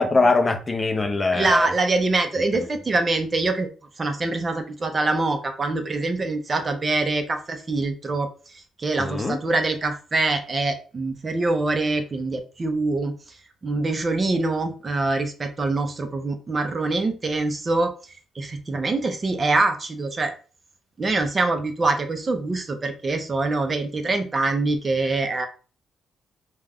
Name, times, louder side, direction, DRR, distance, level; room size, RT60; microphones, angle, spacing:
voice 1, 0.0-1.7 2.5-2.7 9.0-9.4, left 3 dB, 25° left, 0.5 m, -22 dB
voice 2, 1.3-3.7 4.0-8.3 8.8-13.1 13.6-17.9 18.4-20.3 21.0-25.5, right 3 dB, 35° right, 0.5 m, -24 dB
2.4 x 2.2 x 3.3 m
cardioid pair, 90°, 0 cm